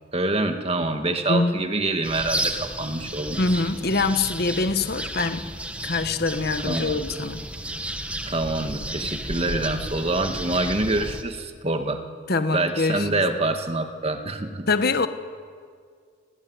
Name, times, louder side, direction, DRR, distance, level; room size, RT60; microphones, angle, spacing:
voice 1, 0.1-3.4 6.6-7.0 8.3-12.0 12.5-14.7, right 2 dB, 30° right, 6 dB, 1.9 m, -26 dB
sound 1, 2.0-11.2, right 1 dB, 5° right, 1.6 m, -32 dB
voice 2, 3.4-5.5 5.8-7.4 12.3-13.1 14.7-15.1, left 3 dB, 55° left, 10 dB, 1.4 m, -24 dB
29.5 x 20.5 x 9.6 m, 2.1 s
head